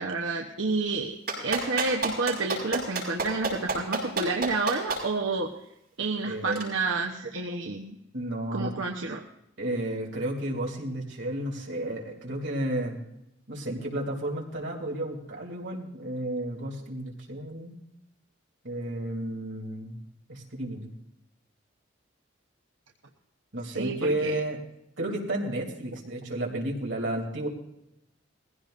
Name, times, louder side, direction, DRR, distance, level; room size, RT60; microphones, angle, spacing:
voice 1, 0.0-5.5 6.0-8.0 8.5-9.2 23.7-24.3, right 3 dB, 90° right, 0 dB, 1.0 m, -30 dB
Clapping, 1.3-5.0 6.5-6.6, right 3 dB, 50° right, 5.7 m, -28 dB
voice 2, 6.2-6.6 8.1-8.7 9.6-13.0 13.5-17.8 18.6-20.0 20.3-20.9 23.5-24.6 25.0-27.5, right 1 dB, 70° right, -1 dB, 3.0 m, -32 dB
20.5 x 16.0 x 2.6 m, 0.81 s
head